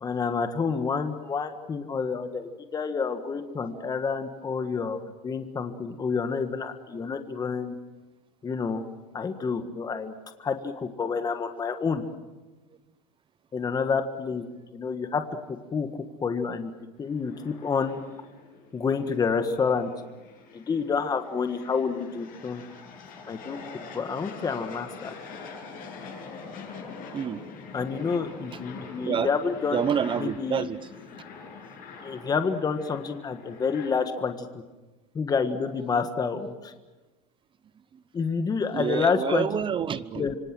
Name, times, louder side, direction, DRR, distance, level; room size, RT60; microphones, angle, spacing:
voice 1, 0.0-7.7 8.4-8.8 9.1-10.1 10.4-12.0 13.5-14.4 14.7-15.2 15.5-15.9 16.2-16.7 17.0-18.0 18.7-19.9 20.5-22.6 23.3-23.6 23.9-25.1 27.7-29.9 30.2-30.6 32.0-34.5 35.1-36.7 38.1-39.6 40.1-40.3, left 5 dB, 20° left, 8 dB, 1.6 m, -28 dB
sound 1, 17.0-33.9, left 5 dB, 45° left, 7.9 m, -44 dB
voice 2, 29.7-30.8 38.7-40.3, right 8 dB, 25° right, 15 dB, 0.9 m, -28 dB
26.5 x 25.0 x 7.6 m, 1.2 s
supercardioid pair, 135°, 20 cm